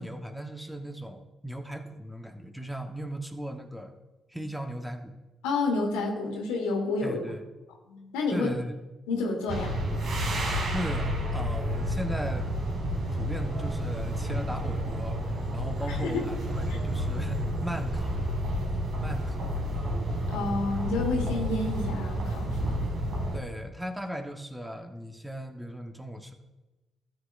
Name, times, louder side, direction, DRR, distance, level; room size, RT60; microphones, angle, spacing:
voice 1, 0.0-3.9 4.3-5.1 7.0-7.4 8.3-8.8 10.7-12.6 13.2-18.2 19.0-19.5 23.3-26.3, right 1 dB, 5° right, 4 dB, 1.2 m, -37 dB
voice 2, 5.4-7.2 7.9-8.5 9.1-9.7 15.9-16.1 20.3-22.8, left 3 dB, 85° left, 1 dB, 1.7 m, -29 dB
sound 1, 9.5-23.4, equal, 60° right, 2.6 m, -30 dB
13.0 x 7.8 x 2.6 m, 1.1 s
hypercardioid pair, 50°, 0 cm